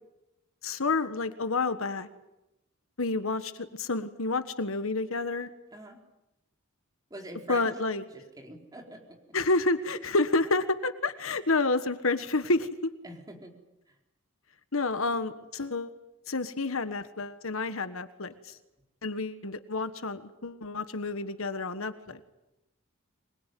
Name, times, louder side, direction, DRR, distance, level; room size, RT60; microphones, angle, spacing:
voice 1, 0.6-2.1 3.0-5.5 7.5-8.0 9.3-12.9 14.7-15.9 16.3-18.6 19.0-22.2, left 3 dB, 70° left, 11 dB, 1.5 m, -29 dB
voice 2, 7.1-7.7 8.1-9.2 13.0-13.5, right 1 dB, 20° right, 2 dB, 4.4 m, -44 dB
25.5 x 21.5 x 9.3 m, 0.94 s
head